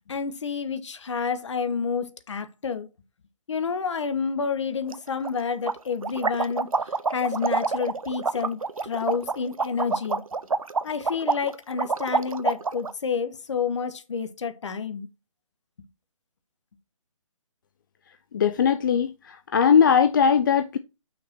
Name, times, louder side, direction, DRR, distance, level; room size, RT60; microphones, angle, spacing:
voice 1, 0.1-2.9 3.5-6.7 7.1-10.2 10.8-15.1, left 5 dB, 60° left, 1.3 m, -29 dB
sound 1, 4.9-5.0 5.2-5.3 5.7-12.9, right 4 dB, 90° right, 0.7 m, -27 dB
voice 2, 18.3-20.8, left 7 dB, 40° left, 0.5 m, -20 dB
6.0 x 4.9 x 6.0 m
figure-of-eight pair, 150°, 17 cm